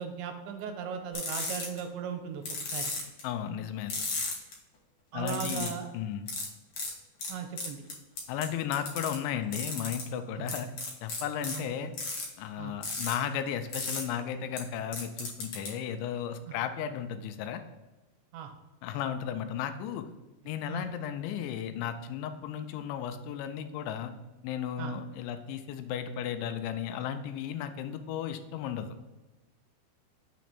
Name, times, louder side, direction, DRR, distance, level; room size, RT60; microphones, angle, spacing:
voice 1, 0.0-2.4 2.7-2.9 5.1-5.9 7.3-7.8 10.4-10.5 11.4-11.6 12.6-12.8 16.5-16.6 18.3-18.5 20.7-20.9 24.8-24.9, right 7 dB, 90° right, 5 dB, 3.0 m, -37 dB
sound 1, 1.1-1.8 2.5-3.2 3.9-4.5 5.3-5.7 6.3-6.5 6.8-6.9 7.2-7.3 7.6-8.4 8.7-9.1 9.5-10.0 10.5-11.6 11.9-12.2 12.8-13.1 13.7-14.0 14.6-14.7 14.9-15.7, left 3 dB, 65° left, 1.3 m, -34 dB
voice 2, 3.2-3.9 5.1-6.3 8.3-10.7 11.0-11.9 12.4-17.6 18.8-20.1 20.5-24.1 24.4-28.9, left 9 dB, 90° left, 8 dB, 2.9 m, -34 dB
6.8 x 3.1 x 5.9 m, 1.1 s
omnidirectional pair, 5.0 m